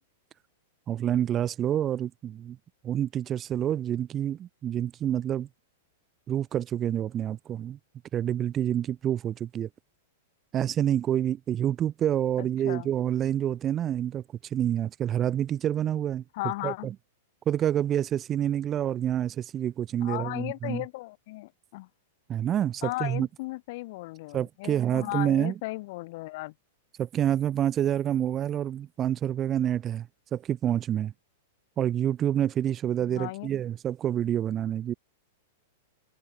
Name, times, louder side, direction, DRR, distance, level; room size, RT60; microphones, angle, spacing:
voice 1, 0.9-2.6 2.8-5.5 6.3-7.8 8.1-9.7 10.5-16.2 16.6-16.9 17.5-20.8 22.3-23.3 24.3-25.5 27.0-31.1 31.8-34.9, right 10 dB, 25° right, 0.3 m, -28 dB
voice 2, 12.4-12.9 16.3-16.9 20.0-21.9 22.8-26.5 33.0-33.5, left 22 dB, 50° left, 1.1 m, -36 dB
supercardioid pair, 145°, 0 cm